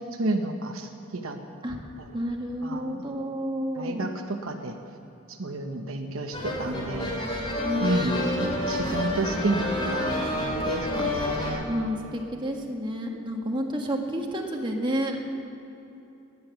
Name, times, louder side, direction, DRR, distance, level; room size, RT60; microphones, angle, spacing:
voice 1, 0.0-1.4 2.6-3.0 3.8-4.8 5.4-7.1 7.8-11.7, right 2 dB, 70° right, 5 dB, 1.0 m, -30 dB
voice 2, 2.1-4.1 7.6-9.1 11.7-15.2, equal, 20° right, 1 dB, 1.5 m, -30 dB
sound 1, 6.3-11.5, left 1 dB, 25° left, 2.8 m, -29 dB
18.0 x 9.8 x 7.0 m, 3.0 s
head